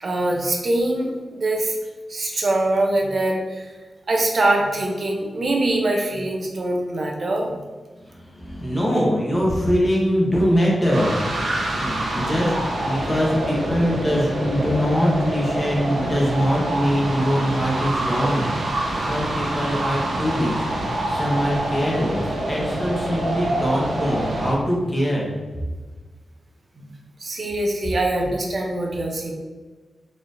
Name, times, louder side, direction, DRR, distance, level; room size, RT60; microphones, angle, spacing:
voice 1, 0.0-1.7 2.1-3.7 4.1-7.6 26.8-26.9 27.2-29.3, right 2 dB, 50° right, 1 dB, 0.7 m, -23 dB
voice 2, 8.0-11.2 11.8-12.5 12.9-18.5 19.0-25.3, equal, 20° left, -4 dB, 1.2 m, -22 dB
sound 1, 10.9-24.5, right 1 dB, 90° right, 0.9 m, -26 dB
4.1 x 3.3 x 2.6 m, 1.3 s
wide cardioid pair, 105°, 0 cm